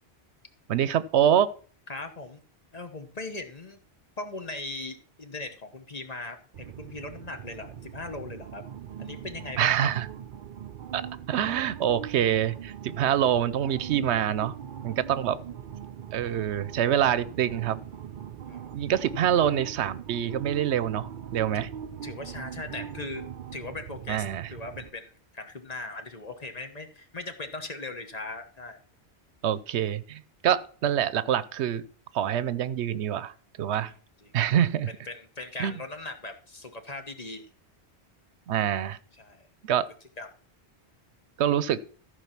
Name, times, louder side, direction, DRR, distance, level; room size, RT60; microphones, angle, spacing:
voice 1, 0.7-1.5 9.6-10.1 10.9-11.0 11.3-14.6 14.8-15.4 16.1-17.8 18.7-21.7 24.1-24.5 29.4-31.8 32.1-33.9 34.3-34.9 35.6-35.8 38.5-39.0 39.6-39.9 41.4-41.8, right 10 dB, 80° right, 17 dB, 0.9 m, -25 dB
voice 2, 1.9-2.4 2.7-3.8 4.2-8.6 9.0-9.9 18.5-18.7 21.5-21.7 22.0-23.2 23.5-28.8 33.8-33.9 34.2-34.3 35.1-37.5 38.5-38.8 39.2-39.5 40.2-40.3, left 2 dB, 35° left, 6 dB, 1.2 m, -39 dB
sound 1, 6.5-24.9, right 9 dB, 55° right, 0.6 m, -41 dB
14.0 x 5.0 x 5.8 m, 0.43 s
omnidirectional pair, 1.1 m